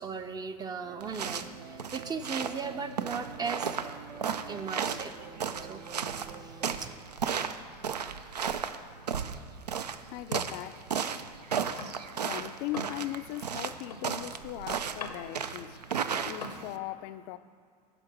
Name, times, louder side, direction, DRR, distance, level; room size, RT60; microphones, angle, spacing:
voice 1, 0.0-3.8 4.5-5.8 6.4-6.6, right 5 dB, 20° right, 0.5 m, -37 dB
sound 1, 0.8-6.9, right 6 dB, 65° right, 0.8 m, -47 dB
sound 2, 1.0-16.8, right 7 dB, 85° right, 0.4 m, -34 dB
sound 3, 9.6-12.3 12.6-16.6, left 3 dB, 90° left, 0.8 m, -46 dB
voice 2, 10.1-10.9 12.2-17.4, left 15 dB, 50° left, 0.4 m, -39 dB
11.0 x 5.0 x 5.9 m
figure-of-eight pair, 75°, 20 cm